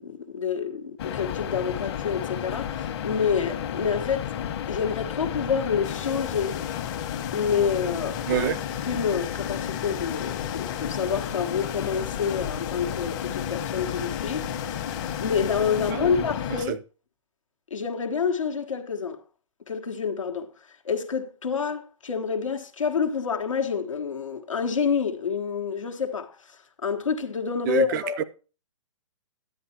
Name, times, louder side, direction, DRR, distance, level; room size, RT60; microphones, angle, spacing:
voice 1, 0.0-4.3 4.7-6.6 7.3-8.5 8.8-14.8 15.2-16.8 17.7-19.2 19.7-28.2, left 6 dB, 85° left, 1.2 m, -28 dB
sound 1, 1.0-16.7, left 9 dB, 50° left, 1.2 m, -32 dB
sound 2, 5.8-15.9, left 13 dB, 35° left, 0.5 m, -42 dB
voice 2, 8.3-8.6 15.9-16.1 16.7-16.8 27.7-28.2, right 10 dB, 40° right, 0.6 m, -27 dB
10.0 x 10.0 x 2.9 m
hypercardioid pair, 125°, 16 cm